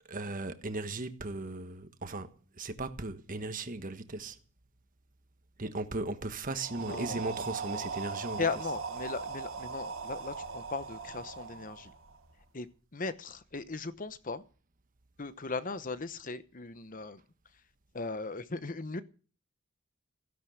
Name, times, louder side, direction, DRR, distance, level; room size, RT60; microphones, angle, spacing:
voice 1, 0.1-2.3 2.6-4.4 5.6-8.5, right 2 dB, 40° right, 1.4 m, -37 dB
sound 1, 6.5-12.5, right 5 dB, 85° right, 1.8 m, -40 dB
voice 2, 6.8-7.3 8.4-11.9 12.5-12.7 12.9-14.4 15.2-17.2 17.9-19.0, left 4 dB, 40° left, 1.0 m, -37 dB
15.5 x 10.5 x 6.5 m
head